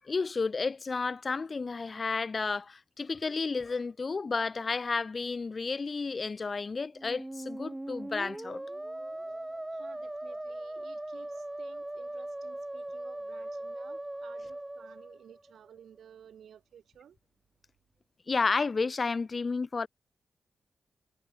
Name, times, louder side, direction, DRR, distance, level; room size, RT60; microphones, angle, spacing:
voice 1, 0.0-8.6 18.3-19.9, left 4 dB, 45° left, 0.7 m, -32 dB
Musical instrument, 6.9-15.7, right 1 dB, 15° right, 5.0 m, -40 dB
voice 2, 9.3-17.2, right 8 dB, 80° right, 4.1 m, -55 dB
cardioid pair, 60°, 0 cm